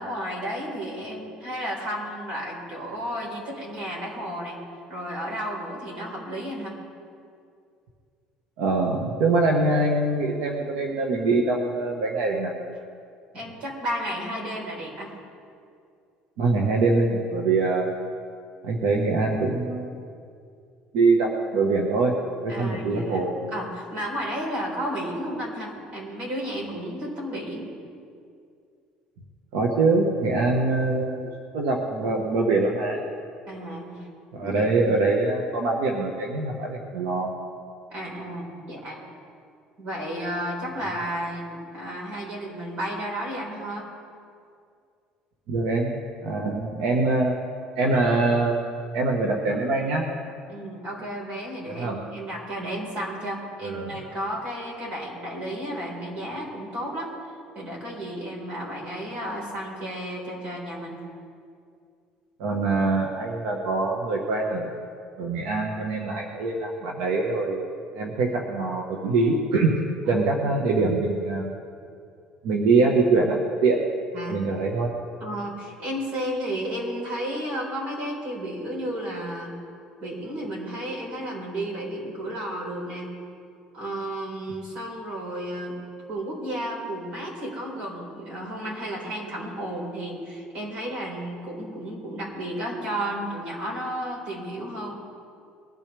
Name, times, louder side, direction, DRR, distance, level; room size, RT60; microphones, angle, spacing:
voice 1, 0.0-4.6 4.9-6.8 13.3-15.2 22.5-27.7 33.5-34.1 34.4-34.9 37.9-39.0 39.8-43.8 50.5-61.0 70.1-70.4 74.1-74.4 75.2-79.6 80.0-83.1 83.7-85.8 86.1-94.9, right 1 dB, 45° right, -2 dB, 4.5 m, -33 dB
voice 2, 8.6-12.5 16.4-17.9 18.6-20.0 20.9-22.1 22.4-23.3 29.5-33.0 34.3-37.3 45.5-45.9 46.2-47.3 47.7-48.7 48.9-50.0 51.8-52.0 53.6-53.9 62.4-64.7 65.2-67.7 67.9-69.7 70.0-71.5 72.4-73.8 74.3-74.9, right 3 dB, 85° right, 0 dB, 1.4 m, -23 dB
21.5 x 12.5 x 3.5 m, 2.3 s
cardioid pair, 160°, 3 cm